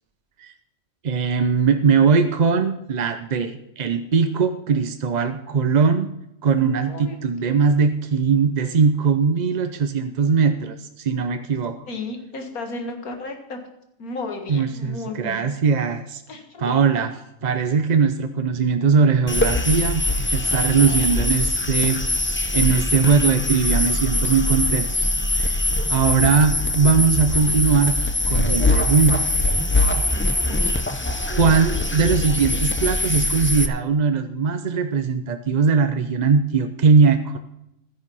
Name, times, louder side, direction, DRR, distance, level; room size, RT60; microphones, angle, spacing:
voice 1, 1.0-6.1 6.4-11.8 14.5-16.2 16.6-17.1 17.4-24.9 25.3-25.6 25.9-29.3 31.3-37.4, right 5 dB, 45° right, 9 dB, 0.5 m, -20 dB
voice 2, 6.6-7.5 11.9-13.6 14.0-15.4 16.3-16.7 30.4-30.6, left 3 dB, 90° left, 4 dB, 2.2 m, -34 dB
sound 1, 19.3-33.7, left 2 dB, 15° left, 0.4 m, -22 dB
12.5 x 10.0 x 5.5 m, 0.83 s
omnidirectional pair, 1.5 m